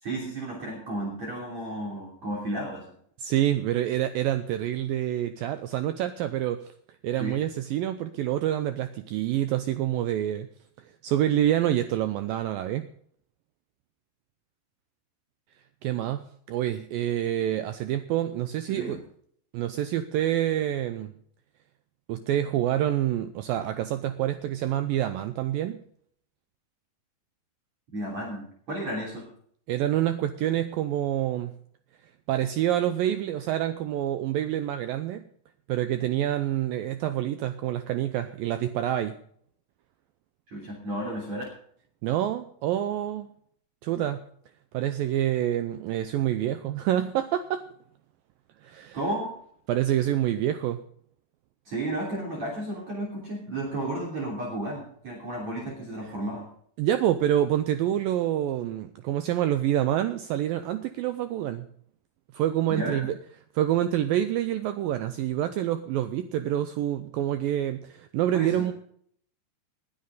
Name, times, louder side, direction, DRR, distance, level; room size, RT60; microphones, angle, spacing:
voice 1, 0.0-2.9 7.2-7.4 18.7-19.0 27.9-29.3 40.5-41.4 48.9-49.3 51.7-56.5 62.7-63.1 68.3-68.6, right 1 dB, 40° right, -2 dB, 4.0 m, -33 dB
voice 2, 3.2-6.7 7.0-10.5 11.0-12.9 15.8-16.2 16.5-19.0 19.5-21.1 22.1-25.8 29.7-31.5 32.3-35.2 35.7-39.2 42.0-43.3 43.8-44.2 44.7-47.6 48.6-49.0 49.7-50.8 56.8-61.7 62.3-63.1 63.5-68.7, right 12 dB, 85° right, 10 dB, 2.0 m, -27 dB
20.0 x 9.9 x 4.0 m, 0.62 s
omnidirectional pair, 4.9 m